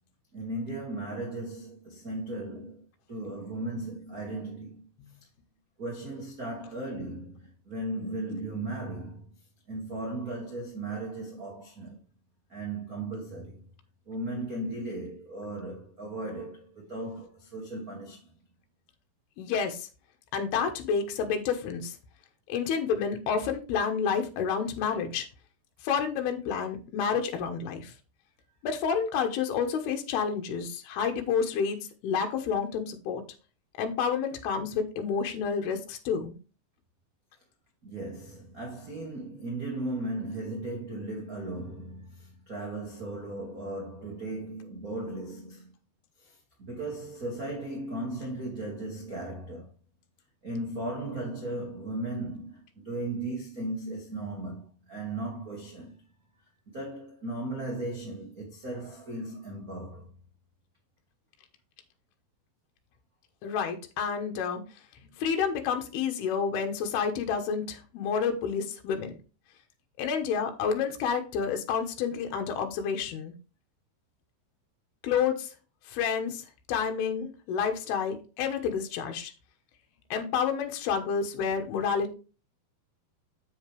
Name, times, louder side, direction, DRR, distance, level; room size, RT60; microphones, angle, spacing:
voice 1, 0.3-4.9 5.8-9.2 9.7-12.0 12.5-13.6 14.1-18.3 27.0-27.2 37.8-45.7 46.2-49.7 50.4-56.0 56.7-60.1, right 2 dB, 45° right, 1.1 m, -36 dB
voice 2, 19.4-19.9 20.3-22.0 22.5-25.3 25.8-27.9 28.6-31.8 32.0-33.2 33.8-36.4 63.4-64.6 65.2-69.1 70.0-73.3 75.0-75.5 75.9-79.3 80.1-82.1, left 6 dB, 80° left, 3.0 m, -29 dB
7.7 x 7.1 x 3.2 m
omnidirectional pair, 4.7 m